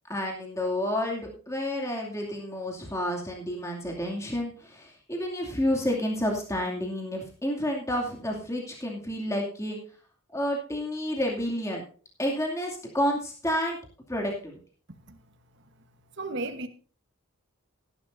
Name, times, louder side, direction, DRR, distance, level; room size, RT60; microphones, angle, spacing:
voice 1, 0.1-9.8 10.3-11.8 12.2-13.8 14.1-14.6, left 1 dB, 15° left, 2.5 m, -30 dB
voice 2, 16.2-16.7, right 2 dB, 50° right, 1.3 m, -33 dB
16.5 x 11.0 x 2.6 m
head